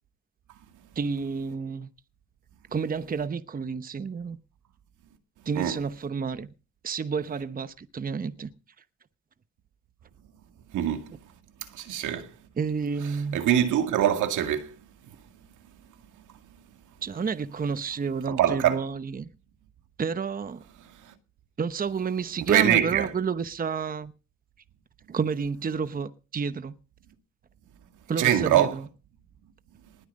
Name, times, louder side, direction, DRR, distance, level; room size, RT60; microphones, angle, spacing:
voice 1, 0.9-1.9 2.7-4.4 5.5-6.5 6.8-8.5 12.6-13.4 17.0-19.3 20.0-20.6 21.6-24.1 25.1-26.7 28.1-28.9, right 5 dB, 30° right, 0.9 m, -30 dB
voice 2, 10.7-11.0 11.9-12.3 13.3-14.7 18.3-18.8 22.5-23.1 28.2-28.7, right 10 dB, 80° right, 2.1 m, -23 dB
19.5 x 9.0 x 5.3 m
cardioid pair, 90°, 30 cm